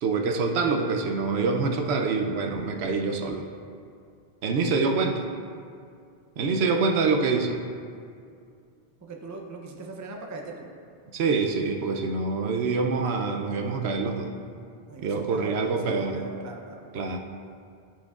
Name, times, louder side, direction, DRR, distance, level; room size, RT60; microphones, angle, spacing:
voice 1, 0.0-3.4 4.4-5.3 6.4-7.6 11.1-14.3 15.0-16.2 16.9-17.2, right 4 dB, 75° right, 3 dB, 0.8 m, -25 dB
voice 2, 9.0-10.7 14.9-17.1, right 3 dB, 25° right, 1 dB, 0.4 m, -40 dB
12.0 x 4.6 x 2.4 m, 2.3 s
omnidirectional pair, 1.1 m